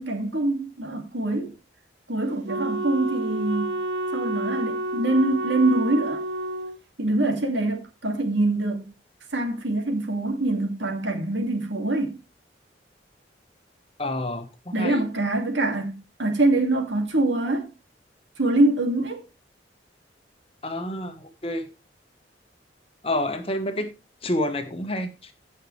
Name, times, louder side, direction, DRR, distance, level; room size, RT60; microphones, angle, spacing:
voice 1, 0.0-1.5 2.1-3.8 4.1-6.2 7.0-8.9 9.3-12.2 14.7-17.7 18.4-19.2, right 2 dB, 80° right, 2.3 m, -24 dB
Wind instrument woodwind instrument, 2.5-6.8, right 2 dB, 65° right, 0.6 m, -29 dB
voice 2, 14.0-15.0 20.6-21.7 23.0-23.9 24.2-25.3, left 1 dB, 30° left, 1.2 m, -29 dB
15.5 x 5.7 x 3.2 m
head